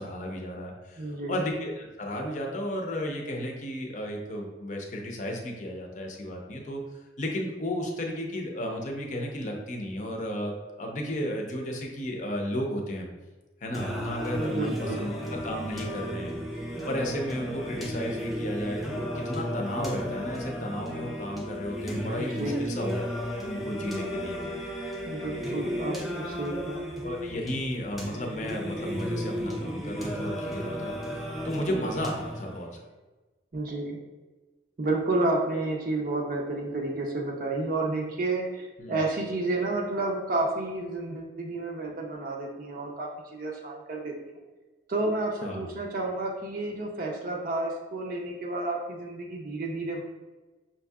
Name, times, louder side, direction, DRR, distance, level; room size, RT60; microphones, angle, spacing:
voice 1, 0.0-6.8 7.2-10.5 10.8-13.1 13.6-16.4 16.8-24.4 25.5-25.7 26.5-26.6 27.0-32.8 38.8-39.0 45.4-45.7, equal, 40° left, 1 dB, 0.6 m, -34 dB
voice 2, 1.0-1.4 14.3-15.1 21.9-22.7 25.1-26.8 33.5-34.0 34.8-44.4 44.9-50.0, right 2 dB, 50° right, -1 dB, 0.5 m, -31 dB
Singing, 13.7-32.7, equal, ahead, 0.5 m, -34 dB
5.8 x 2.6 x 2.3 m, 1.2 s
head